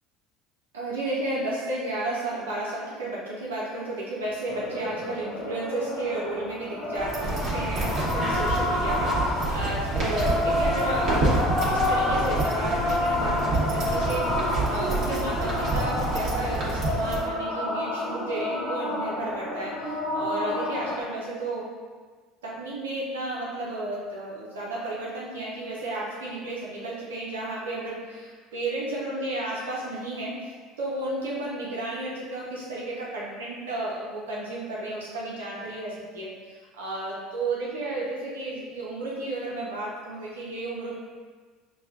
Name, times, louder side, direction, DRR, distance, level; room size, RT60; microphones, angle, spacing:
voice 1, 0.7-21.7 22.4-40.9, right 2 dB, 90° right, -6 dB, 0.8 m, -33 dB
sound 1, 4.5-21.0, left 1 dB, 60° left, 1.0 m, -29 dB
sound 2, 7.0-17.2, right 2 dB, 50° right, 1.3 m, -28 dB
6.1 x 2.3 x 2.4 m, 1.5 s
hypercardioid pair, 75°, 0 cm